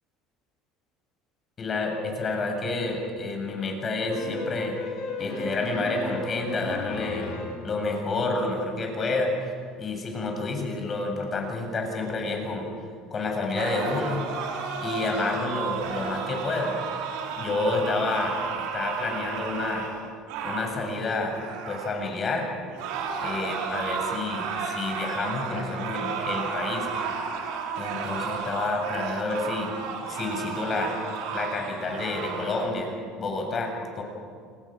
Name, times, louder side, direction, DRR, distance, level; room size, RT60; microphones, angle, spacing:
voice 1, 1.6-4.7 5.2-7.3 7.6-9.3 9.8-12.7 13.1-14.3 14.8-16.8 17.4-19.9 20.4-21.4 21.7-22.5 23.2-26.9 27.8-29.7 30.0-31.0 31.3-34.0, left 3 dB, 35° left, 2 dB, 7.6 m, -29 dB
sound 1, 4.1-7.7, left 2 dB, 70° left, 7.6 m, -35 dB
sound 2, 13.5-22.0 22.7-32.7, right 5 dB, 75° right, 4.8 m, -33 dB
29.5 x 20.5 x 6.6 m, 2.1 s
supercardioid pair, 90°, 0 cm